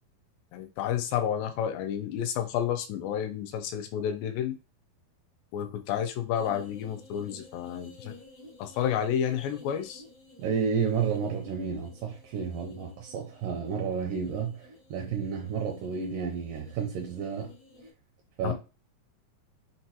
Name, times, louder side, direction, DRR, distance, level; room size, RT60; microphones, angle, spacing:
voice 1, 0.5-4.6 5.5-8.2 8.6-10.0 18.4-18.5, left 9 dB, 80° left, 2.2 m, -30 dB
sound 1, 6.3-17.9, left 2 dB, 55° left, 1.2 m, -53 dB
voice 2, 10.4-17.5 18.4-18.5, right 6 dB, 80° right, 2.2 m, -31 dB
5.9 x 2.2 x 2.8 m
omnidirectional pair, 4.2 m